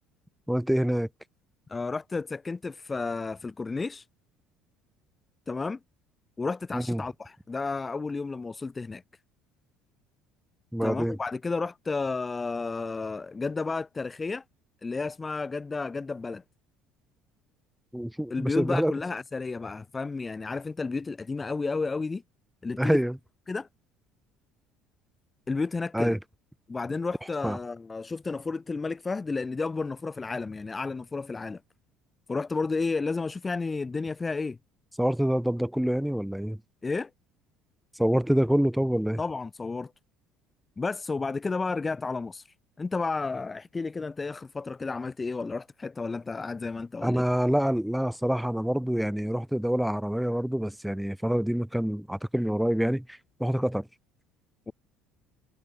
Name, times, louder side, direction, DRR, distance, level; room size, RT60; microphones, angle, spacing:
voice 1, 0.5-1.1 6.7-7.0 10.7-11.2 17.9-18.9 22.8-23.2 25.9-26.2 27.4-27.6 35.0-36.6 38.0-39.2 47.0-53.9, equal, ahead, 2.0 m, -26 dB
voice 2, 1.7-4.0 5.5-5.8 6.4-9.0 10.8-14.4 14.8-16.4 18.3-22.2 22.6-23.0 23.5-23.7 25.5-26.2 26.7-31.6 32.3-34.6 36.8-37.1 39.2-39.9 40.8-42.4 42.8-47.2 54.7-54.8, left 4 dB, 20° left, 1.1 m, -32 dB
supercardioid pair, 90°, 0 cm